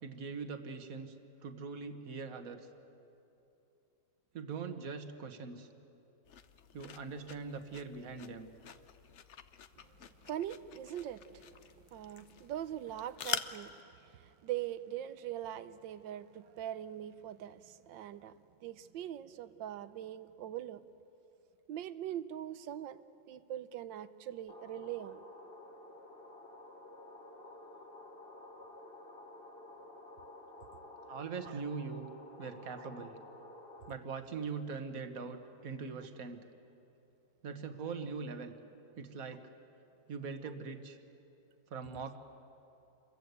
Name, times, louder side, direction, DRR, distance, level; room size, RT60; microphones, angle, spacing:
voice 1, 0.0-1.1 1.4-2.7 4.3-5.7 6.7-8.5 31.1-32.1 32.4-33.2 33.8-36.5 37.4-38.6 39.0-39.5 40.1-41.0 41.7-42.2, right 5 dB, 50° right, 1.7 m, -42 dB
sound 1, 6.3-13.8, left 8 dB, 60° left, 0.8 m, -45 dB
voice 2, 9.7-20.8 21.7-25.2 31.4-31.6, right 11 dB, 75° right, 1.5 m, -42 dB
sound 2, 24.5-34.0, left 2 dB, 30° left, 1.5 m, -52 dB
27.5 x 22.5 x 8.2 m
omnidirectional pair, 2.1 m